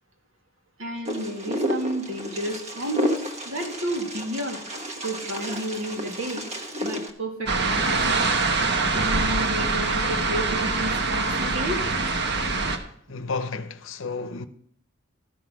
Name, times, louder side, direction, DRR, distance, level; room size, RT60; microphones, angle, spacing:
voice 1, 0.8-4.6 5.0-6.5 6.8-8.2 8.9-11.8, equal, 85° right, 2.1 m, -31 dB
Wind, 1.0-7.1, equal, 35° right, 1.2 m, -31 dB
sound 1, 7.5-12.8, right 3 dB, 60° right, 1.1 m, -24 dB
voice 2, 13.1-14.5, left 4 dB, 70° left, 0.7 m, -31 dB
13.0 x 5.9 x 6.1 m
head